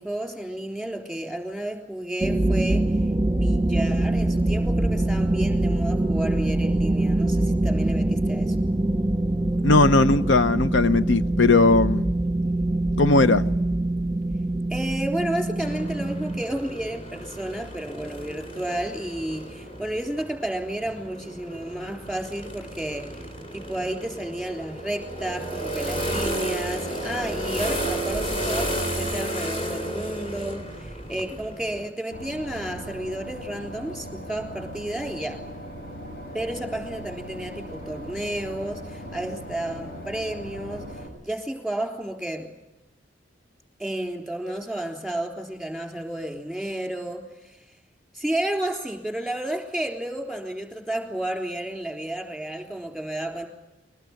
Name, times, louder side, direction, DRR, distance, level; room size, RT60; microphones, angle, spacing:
voice 1, 0.0-2.9 3.3-8.7 14.7-23.2 23.5-35.4 36.3-40.9 41.2-42.5 43.8-47.6 48.1-53.5, right 1 dB, ahead, 3.5 m, -32 dB
sound 1, 2.2-16.4, right 1 dB, 15° right, 1.0 m, -24 dB
voice 2, 9.6-12.1 13.0-13.5, left 3 dB, 85° left, 0.7 m, -18 dB
sound 2, 15.6-31.9, right 1 dB, 30° left, 3.3 m, -32 dB
Boat Water vehicle / Engine, 32.1-41.1, equal, 55° left, 6.5 m, -39 dB
22.5 x 18.5 x 9.4 m
head